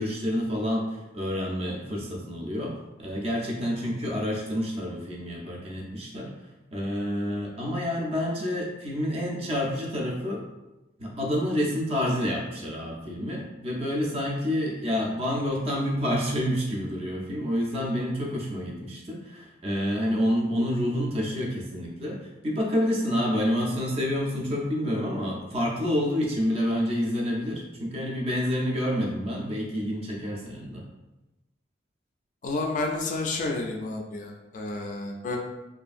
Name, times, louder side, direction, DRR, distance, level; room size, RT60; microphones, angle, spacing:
voice 1, 0.0-2.7 3.0-6.3 6.7-10.4 11.0-30.8, equal, 30° right, -1 dB, 0.4 m, -28 dB
voice 2, 32.4-35.4, left 2 dB, 40° left, 1 dB, 0.3 m, -30 dB
2.6 x 2.4 x 2.4 m, 1.0 s
head